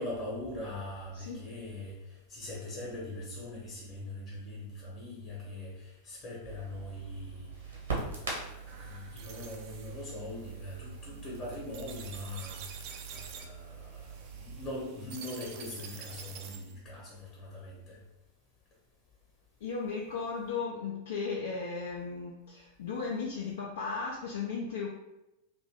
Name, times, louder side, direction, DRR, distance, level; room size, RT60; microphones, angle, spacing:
voice 1, 0.0-2.0 2.3-7.5 8.0-14.1 14.4-18.0, left 1 dB, 35° left, -5 dB, 1.0 m, -41 dB
voice 2, 1.1-1.5 19.6-24.9, left 5 dB, 60° left, -2 dB, 0.4 m, -36 dB
Crackle, 6.4-14.7, right 4 dB, 65° right, 1.0 m, -42 dB
sound 1, 8.7-16.8, right 6 dB, 45° right, 0.4 m, -48 dB
2.6 x 2.5 x 3.4 m, 0.94 s
figure-of-eight pair, 90°, 0 cm